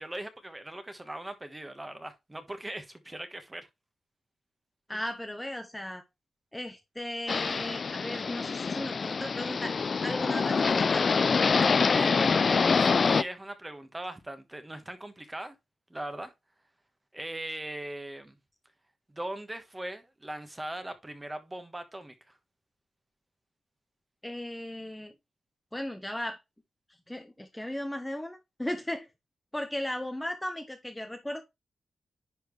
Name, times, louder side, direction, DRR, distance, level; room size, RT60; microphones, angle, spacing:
voice 1, 0.0-3.7 4.9-5.0 11.9-15.5 15.9-16.3 17.1-18.4 19.1-22.3, right 1 dB, 15° right, 1.4 m, -40 dB
voice 2, 4.9-6.0 6.5-11.3 24.2-25.1 25.7-26.4 27.1-29.1 29.5-31.4, left 1 dB, 10° left, 1.0 m, -36 dB
sound 1, 7.3-13.2, left 5 dB, 50° left, 0.3 m, -25 dB
10.5 x 4.3 x 3.2 m
cardioid pair, 100°, 0 cm